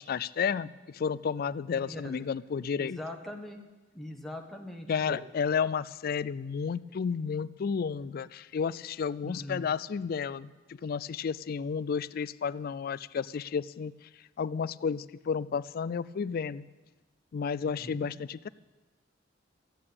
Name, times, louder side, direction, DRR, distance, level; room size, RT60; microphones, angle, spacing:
voice 1, 0.0-3.0 4.9-10.5 10.8-13.9 14.4-16.7 17.3-18.5, left 6 dB, 50° left, 18 dB, 0.4 m, -32 dB
voice 2, 1.9-2.2 2.8-3.6 3.9-5.2 9.2-9.7 17.6-18.1, left 1 dB, ahead, 2 dB, 1.3 m, -41 dB
14.0 x 8.6 x 8.7 m, 1.2 s
head